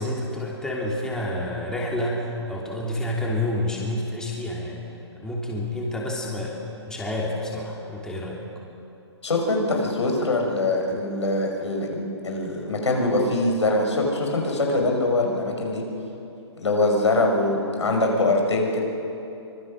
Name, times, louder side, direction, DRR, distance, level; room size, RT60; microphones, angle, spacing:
voice 1, 0.0-4.8 5.2-6.6 6.9-8.4, left 1 dB, 5° left, -3 dB, 3.0 m, -29 dB
voice 2, 9.2-15.8 16.6-18.8, left 2 dB, 80° left, 1 dB, 5.5 m, -23 dB
25.0 x 21.0 x 6.4 m, 2.8 s
hypercardioid pair, 135°, 15 cm